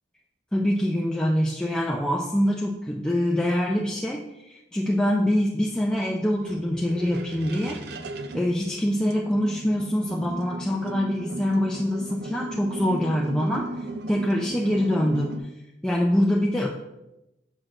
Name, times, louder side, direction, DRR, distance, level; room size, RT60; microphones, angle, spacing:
voice 1, 0.5-7.8 8.3-13.7 14.1-15.3 15.8-16.7, equal, 5° left, -3 dB, 0.4 m, -24 dB
sound 1, 5.8-15.4, right 2 dB, 65° right, 0.4 m, -36 dB
6.3 x 6.2 x 2.4 m, 0.91 s
head